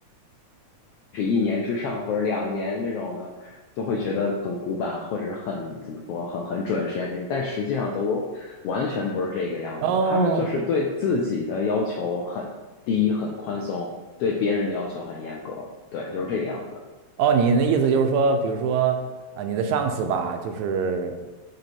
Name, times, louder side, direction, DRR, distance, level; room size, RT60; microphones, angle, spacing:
voice 1, 1.1-12.5 12.9-13.9 14.2-15.7 15.9-16.8, left 4 dB, 80° left, 0 dB, 1.3 m, -27 dB
voice 2, 9.8-10.5 17.2-19.0 19.4-21.1, right 5 dB, 90° right, 6 dB, 2.0 m, -22 dB
7.5 x 3.2 x 4.3 m, 1.2 s
omnidirectional pair, 3.4 m